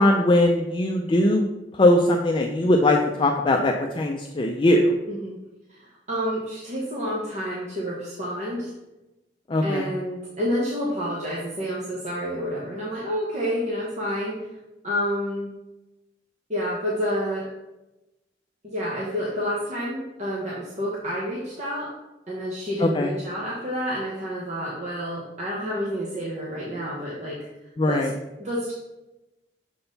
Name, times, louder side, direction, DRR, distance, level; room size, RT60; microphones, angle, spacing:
voice 1, 0.0-1.4 1.7-5.0 9.5-9.9 22.8-23.1 27.8-28.1, left 1 dB, 30° left, 2 dB, 0.4 m, -20 dB
voice 2, 5.1-5.4 5.7-8.7 9.6-14.5 14.8-15.5 16.5-17.5 18.6-21.9 22.3-27.4 27.9-28.1 28.4-28.7, equal, 40° right, -5 dB, 1.1 m, -29 dB
6.8 x 3.9 x 4.0 m, 0.98 s
head